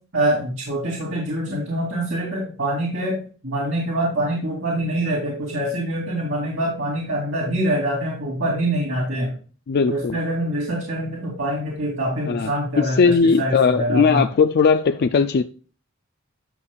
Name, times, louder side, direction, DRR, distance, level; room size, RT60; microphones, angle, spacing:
voice 1, 0.1-3.2 3.4-9.4 9.9-14.3, right 1 dB, 65° right, 2.8 m, -25 dB
voice 2, 9.7-10.2 12.3-12.5 12.8-15.4, left 5 dB, 50° left, 0.4 m, -18 dB
11.0 x 6.7 x 2.3 m
head